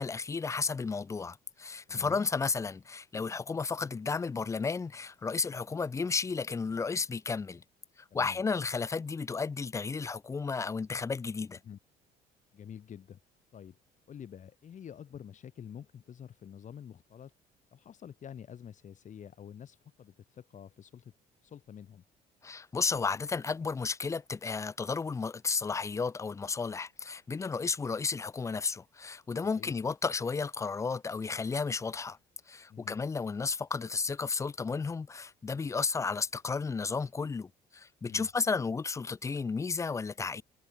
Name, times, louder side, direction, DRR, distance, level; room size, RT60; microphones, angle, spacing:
voice 1, 0.0-7.6 8.1-11.6 22.4-32.2 32.5-40.4, left 4 dB, 20° left, 0.4 m, -33 dB
voice 2, 1.9-2.3 8.1-8.4 11.6-11.8 12.5-13.2 13.5-13.8 14.1-17.3 17.7-21.1 21.4-22.0 29.5-29.7 32.7-33.0 38.0-38.3, left 8 dB, 45° left, 4.3 m, -48 dB
cardioid pair, 110°, 17 cm